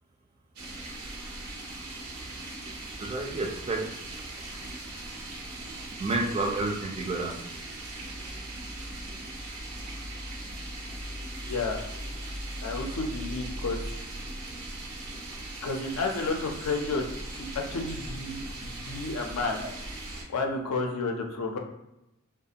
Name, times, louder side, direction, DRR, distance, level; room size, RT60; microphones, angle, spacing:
sound 1, 0.6-20.2, right 1 dB, 90° right, 0.7 m, -39 dB
voice 1, 2.9-3.9 5.6-5.7 6.0-7.3, right 2 dB, 25° right, 2 dB, 0.3 m, -30 dB
voice 2, 11.4-11.8 12.6-13.8 15.6-17.0 17.3-19.6 20.3-21.6, left 3 dB, 80° left, 3 dB, 0.5 m, -31 dB
2.4 x 2.2 x 2.8 m, 0.90 s
head